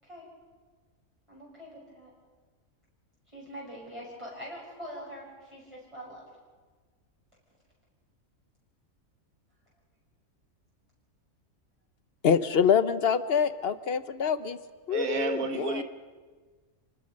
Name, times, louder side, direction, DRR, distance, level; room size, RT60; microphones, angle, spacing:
voice 1, 1.3-2.1 3.3-6.2, equal, 20° right, 6.2 m, -43 dB
voice 2, 12.2-14.6 14.9-15.8, left 7 dB, 50° left, 1.1 m, -25 dB
voice 3, 14.9-15.8, right 4 dB, 85° right, 1.7 m, -31 dB
29.5 x 20.0 x 5.3 m
omnidirectional pair, 1.4 m